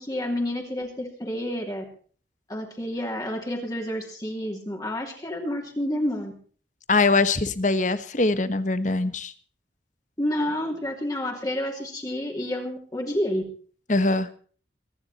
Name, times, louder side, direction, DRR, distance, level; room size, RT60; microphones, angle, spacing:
voice 1, 0.0-1.8 2.5-6.3 10.2-13.4, left 1 dB, 20° left, 1 dB, 2.9 m, -29 dB
voice 2, 6.9-9.3 13.9-14.3, left 3 dB, 40° left, 13 dB, 1.3 m, -22 dB
23.5 x 10.5 x 4.2 m, 0.43 s
head